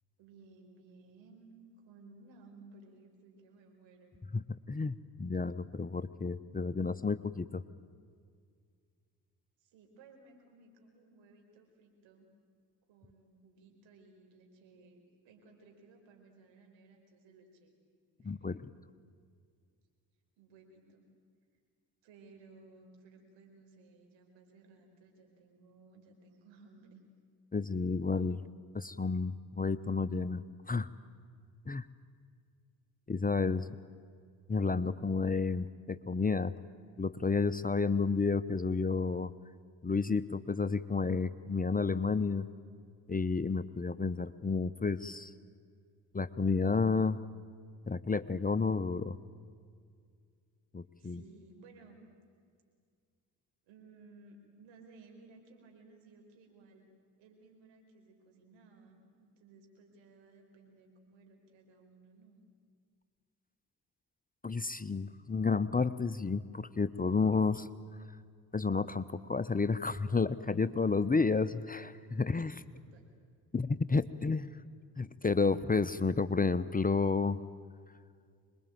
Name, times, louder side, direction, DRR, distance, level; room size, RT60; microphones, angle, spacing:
voice 1, 0.2-4.2 9.6-12.3 12.9-17.7 18.2-18.6 20.4-21.1 22.0-27.0 51.0-52.0 53.7-56.9 57.2-62.4 72.7-73.1, right 3 dB, 70° right, 3 dB, 4.9 m, -59 dB
voice 2, 4.3-7.6 18.2-18.5 27.5-28.4 28.7-30.4 30.7-30.9 31.7-31.9 33.1-33.7 34.5-36.5 37.0-39.3 39.8-42.5 43.1-45.3 46.1-47.2 47.9-49.2 50.7-51.2 64.4-67.7 68.5-72.6 73.5-74.5 75.0-77.4, left 4 dB, 20° left, 14 dB, 0.9 m, -31 dB
26.0 x 21.5 x 9.2 m, 2.1 s
hypercardioid pair, 50°, 46 cm